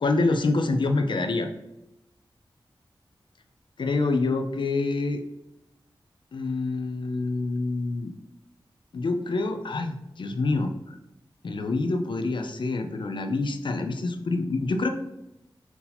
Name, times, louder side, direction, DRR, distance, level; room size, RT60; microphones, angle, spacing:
voice 1, 0.0-1.5 3.8-5.2 6.3-8.1 8.9-11.0 11.4-14.9, left 3 dB, 65° left, 6 dB, 0.5 m, -26 dB
4.0 x 2.7 x 4.2 m, 0.86 s
wide cardioid pair, 95°, 9 cm